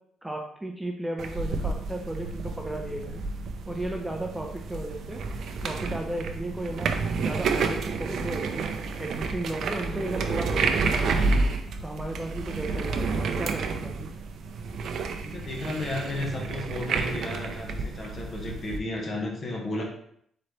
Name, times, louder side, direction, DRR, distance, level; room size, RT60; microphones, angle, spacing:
voice 1, 0.2-3.2 3.7-5.2 5.6-6.9 7.2-8.7 9.0-11.3 11.8-14.1, right 1 dB, 5° right, 2 dB, 0.6 m, -35 dB
sound 1, 1.2-18.8, right 4 dB, 65° right, 0.5 m, -30 dB
voice 2, 15.2-19.8, left 2 dB, 40° left, 0 dB, 1.2 m, -33 dB
4.2 x 3.9 x 3.2 m, 0.67 s
cardioid pair, 90°, 0 cm